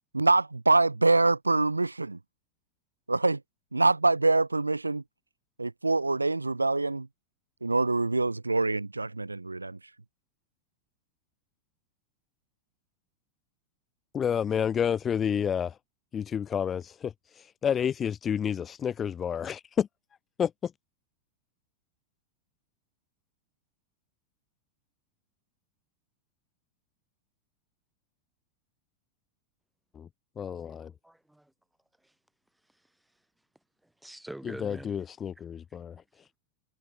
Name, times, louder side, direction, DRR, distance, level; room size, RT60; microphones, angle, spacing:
voice 1, 0.1-2.2 3.1-3.4 3.7-5.0 5.6-7.1 7.6-9.8, right 3 dB, 80° right, 0.6 m, -25 dB
voice 2, 14.1-15.8 16.1-19.9 20.4-20.7 29.9-30.1 30.4-30.9 34.4-36.0, left 8 dB, 25° left, 0.7 m, -30 dB
voice 3, 30.5-31.5 34.0-34.9, right 1 dB, 5° right, 6.1 m, -45 dB
figure-of-eight pair, 90°, 0 cm